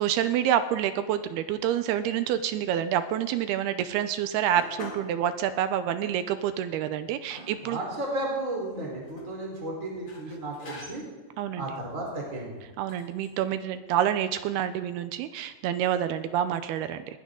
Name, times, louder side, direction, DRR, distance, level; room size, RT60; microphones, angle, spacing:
voice 1, 0.0-7.8 11.4-11.6 12.8-17.2, right 10 dB, 80° right, 11 dB, 2.4 m, -27 dB
sound 1, 4.6-5.2 5.5-5.6 6.4-6.5 6.9-7.8 8.7-9.3 10.1-11.2 12.0-12.2 12.9-13.3, left 3 dB, 40° left, 1.8 m, -45 dB
voice 2, 7.3-11.0 11.6-12.6, right 1 dB, 20° right, -2 dB, 4.2 m, -34 dB
20.0 x 16.5 x 3.9 m, 1.3 s
omnidirectional pair, 5.0 m